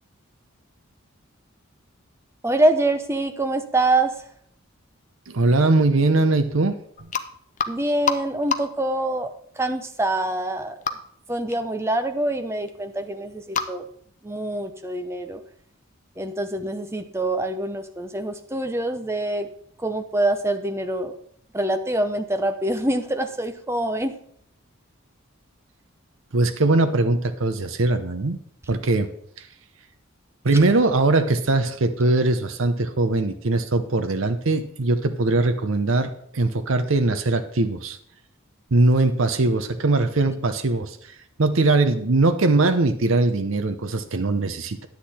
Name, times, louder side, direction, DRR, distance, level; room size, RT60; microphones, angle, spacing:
voice 1, 2.4-4.1 7.7-10.8 11.3-13.8 14.2-15.4 16.2-19.5 19.8-21.1 21.5-24.1, right 1 dB, 10° right, 7 dB, 0.7 m, -25 dB
voice 2, 5.3-6.8 26.3-28.4 28.7-29.1 30.4-38.0 38.7-41.0 41.4-44.9, right 2 dB, 70° right, 8 dB, 0.8 m, -21 dB
sound 1, 7.0-7.2 7.6-8.2 8.4-8.8 10.8-10.9 11.5-11.6 12.7-12.8 13.0-13.1 13.5-13.7, left 6 dB, 35° left, 0.6 m, -25 dB
10.0 x 8.3 x 4.3 m, 0.64 s
head